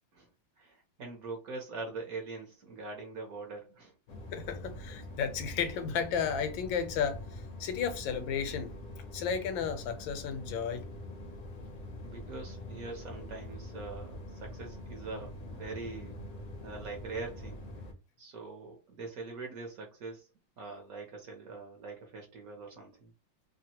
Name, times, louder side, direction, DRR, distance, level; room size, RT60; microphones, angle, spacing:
voice 1, 0.6-3.9 12.0-16.2 16.6-17.6 18.2-20.3 20.6-23.1, right 3 dB, 60° right, 1.1 m, -43 dB
sound 1, 4.1-17.9, left 1 dB, 65° left, 0.9 m, -44 dB
voice 2, 4.3-8.7 9.1-10.8, left 7 dB, 85° left, 1.4 m, -33 dB
3.3 x 2.1 x 2.8 m
omnidirectional pair, 2.1 m